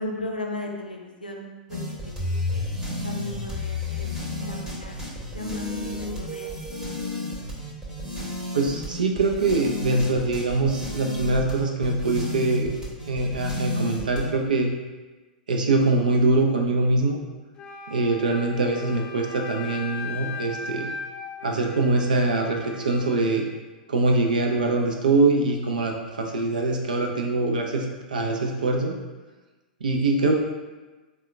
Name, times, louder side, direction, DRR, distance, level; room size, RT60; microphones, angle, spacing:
voice 1, 0.0-1.8 2.1-2.7 3.0-4.1 4.3-5.0 5.3-5.6 6.0-6.6, left 1 dB, 85° left, 0 dB, 0.5 m, -36 dB
sound 1, 1.7-14.3, left 2 dB, 10° right, 0.9 m, -32 dB
voice 2, 8.5-12.7 13.1-14.7 15.5-17.2 17.9-20.9 21.4-23.5 23.9-28.9 29.8-30.3, right 2 dB, 70° right, 2 dB, 0.5 m, -23 dB
Wind instrument woodwind instrument, 17.6-23.5, left 4 dB, 20° left, 0.6 m, -38 dB
3.7 x 2.2 x 3.2 m, 1.2 s
figure-of-eight pair, 100°, 5 cm